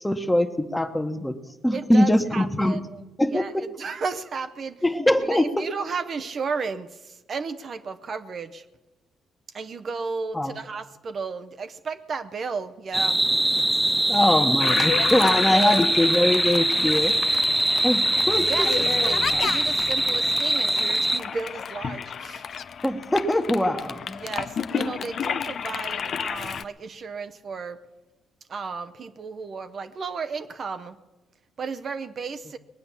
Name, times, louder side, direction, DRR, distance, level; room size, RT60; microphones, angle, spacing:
voice 1, 0.0-1.3 1.6-2.8 3.2-3.6 4.8-5.7 10.3-10.5 14.1-17.1 17.8-18.7 19.3-19.5 22.8-24.2, left 1 dB, 10° left, 7 dB, 1.3 m, -22 dB
voice 2, 1.7-3.0 3.3-4.8 5.3-8.6 9.5-13.2 15.0-15.8 18.4-22.4 24.2-27.8 28.5-30.9 31.6-32.6, right 5 dB, 50° right, 9 dB, 0.8 m, -33 dB
sound 1, 12.9-21.2, right 1 dB, 10° right, 0.4 m, -23 dB
Toilet flush, 14.6-26.6, left 7 dB, 55° left, 0.6 m, -31 dB
21.0 x 8.8 x 7.2 m, 1.1 s
supercardioid pair, 75°, 0 cm